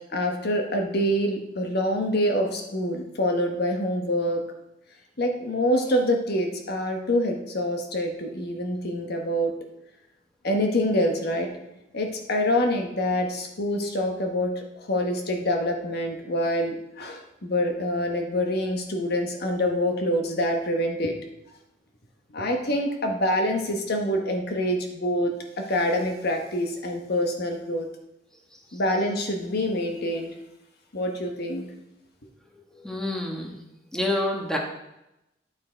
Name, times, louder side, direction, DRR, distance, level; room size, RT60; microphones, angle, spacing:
voice 1, 0.1-4.4 5.2-9.5 10.4-11.5 11.9-21.1 22.3-27.9 28.7-30.3 30.9-31.6, left 1 dB, 60° left, 3 dB, 1.2 m, -26 dB
voice 2, 32.7-33.6 33.9-34.6, left 1 dB, 5° left, 0 dB, 1.3 m, -28 dB
11.5 x 6.2 x 4.4 m, 0.90 s
head